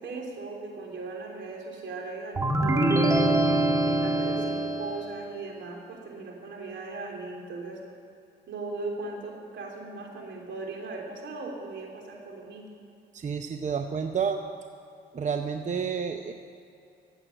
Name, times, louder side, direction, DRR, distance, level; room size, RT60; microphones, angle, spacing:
voice 1, 0.0-3.4 3.8-7.8 8.5-12.8, right 3 dB, 70° right, 0 dB, 3.3 m, -38 dB
sound 1, 2.4-5.2, right 1 dB, 15° right, 1.3 m, -24 dB
voice 2, 13.1-14.4 15.1-16.3, right 6 dB, 40° right, 6 dB, 0.7 m, -30 dB
15.0 x 8.1 x 9.0 m, 2.6 s
cardioid pair, 90°, 20 cm